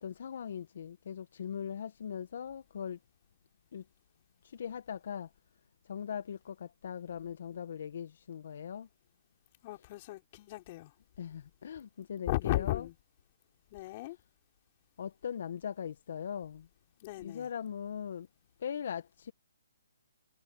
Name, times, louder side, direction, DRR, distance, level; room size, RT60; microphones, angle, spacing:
voice 1, 0.0-3.0 3.7-3.8 4.4-5.3 5.8-8.9 11.2-12.9 15.0-16.7 17.2-18.3 18.6-19.3, left 8 dB, 60° left, 1.4 m, -40 dB
voice 2, 9.6-10.9 12.3-12.9 13.7-14.2 17.0-17.5, left 18 dB, 35° left, 4.0 m, -35 dB
hypercardioid pair, 145°, 0 cm